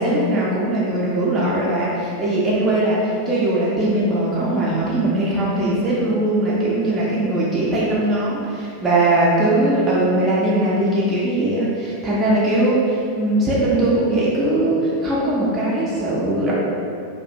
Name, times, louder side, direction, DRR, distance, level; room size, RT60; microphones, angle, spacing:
voice 1, 0.0-16.5, right 1 dB, 20° right, -7 dB, 0.4 m, -20 dB
2.4 x 2.1 x 2.7 m, 2.5 s
figure-of-eight pair, 90°, 0 cm